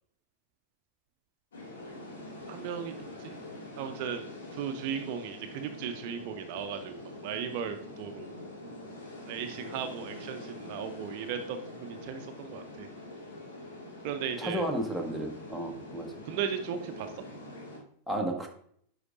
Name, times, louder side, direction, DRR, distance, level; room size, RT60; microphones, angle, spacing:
sound 1, 1.5-17.8, left 1 dB, 65° left, 2.0 m, -45 dB
voice 1, 2.5-3.3 3.8-4.3 4.5-8.3 9.3-12.9 14.0-14.6 16.3-17.2, right 8 dB, 45° right, 7 dB, 0.7 m, -36 dB
voice 2, 14.4-16.1 18.1-18.5, right 1 dB, ahead, 3 dB, 1.2 m, -32 dB
9.5 x 5.0 x 2.6 m, 0.63 s
figure-of-eight pair, 90°, 0 cm